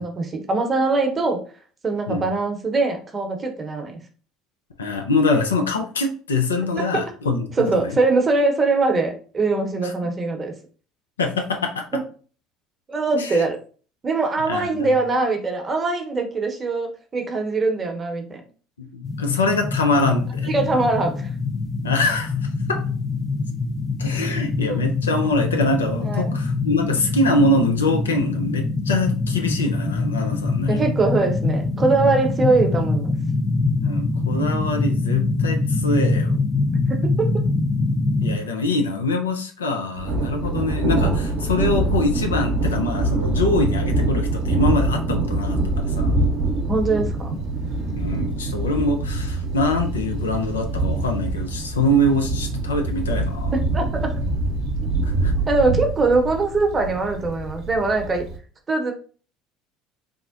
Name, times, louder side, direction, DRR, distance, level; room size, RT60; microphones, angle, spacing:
voice 1, 0.0-1.4 1.8-4.0 6.8-6.9 7.6-10.5 11.9-12.0 12.9-13.6 14.0-18.4 20.4-21.3 24.7-24.8 26.1-26.4 30.7-33.1 36.9-37.4 46.7-47.4 53.5-54.1 55.5-58.3 58.7-58.9, right 3 dB, 30° right, 3 dB, 0.8 m, -22 dB
voice 2, 4.8-8.0 9.8-9.9 11.2-11.9 13.2-13.4 14.5-14.9 18.8-20.6 21.8-22.3 22.7-22.8 24.0-30.8 33.8-36.3 38.2-45.6 45.8-46.1 48.0-53.5 55.0-55.3, left 2 dB, 85° left, 4 dB, 0.4 m, -24 dB
sound 1, 19.0-38.4, left 3 dB, 25° left, 0.5 m, -24 dB
Thunder, 40.0-58.4, right 2 dB, 60° right, 0.7 m, -24 dB
3.5 x 2.1 x 2.4 m, 0.40 s
hypercardioid pair, 65°, 0 cm